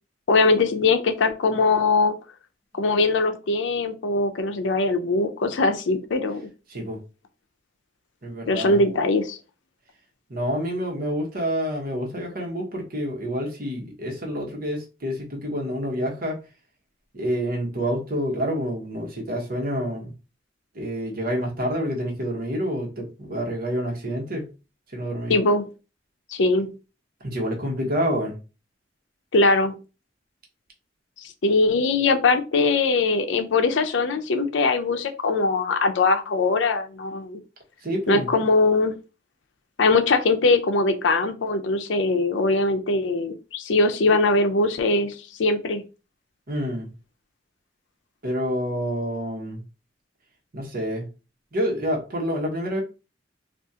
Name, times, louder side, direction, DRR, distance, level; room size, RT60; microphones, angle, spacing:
voice 1, 0.3-2.1 2.8-6.4 8.5-9.4 25.3-25.6 26.3-26.7 29.3-29.7 31.2-37.4 38.1-38.9 39.8-45.1 45.4-45.8, left 3 dB, 80° left, 0.5 m, -21 dB
voice 2, 8.2-8.8 10.3-16.4 17.1-20.1 20.7-24.5 24.9-25.3 27.2-28.3 37.8-38.3 46.5-46.9 48.2-49.6 50.5-51.1 51.5-52.8, equal, 50° right, 1.1 m, -28 dB
3.6 x 2.4 x 2.7 m
head